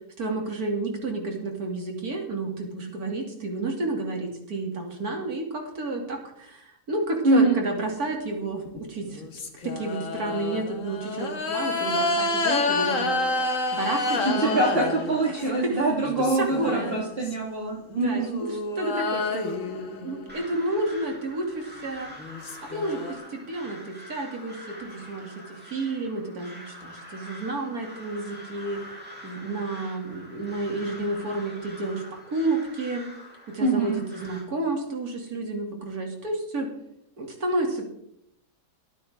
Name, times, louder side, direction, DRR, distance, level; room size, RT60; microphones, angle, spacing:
voice 1, 0.2-6.5 6.9-9.2 9.6-13.1 13.7-14.6 15.3-15.8 16.4-17.0 17.9-22.1 22.7-23.0 23.5-25.3 25.7-28.8 29.2-32.0 32.3-33.1 33.5-36.7 37.2-37.9, right 2 dB, 75° right, 1 dB, 3.2 m, -30 dB
voice 2, 7.2-7.6 14.2-18.4 33.6-34.0, right 2 dB, 40° right, -2 dB, 2.3 m, -24 dB
sound 1, 8.7-15.6 16.0-17.3 17.9-20.6 21.9-22.0 22.2-23.1, left 3 dB, 60° left, 1.9 m, -29 dB
Crow, 20.3-34.4, equal, 5° right, 3.6 m, -45 dB
23.0 x 9.2 x 3.6 m, 0.74 s
omnidirectional pair, 1.6 m